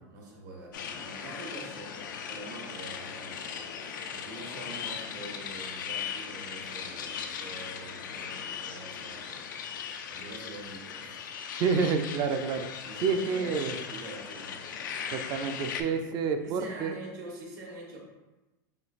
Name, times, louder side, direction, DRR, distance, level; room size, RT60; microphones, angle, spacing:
voice 1, 0.0-3.6 4.1-9.4 10.1-11.3 12.8-14.6 16.4-18.0, right 2 dB, 75° right, -2 dB, 1.3 m, -45 dB
sound 1, 0.7-15.8, left 7 dB, 90° left, 0.4 m, -38 dB
voice 2, 11.6-12.7 13.0-13.7 15.1-16.9, right 5 dB, 45° right, 6 dB, 0.4 m, -28 dB
6.3 x 2.4 x 2.4 m, 1.1 s
supercardioid pair, 120°, 10 cm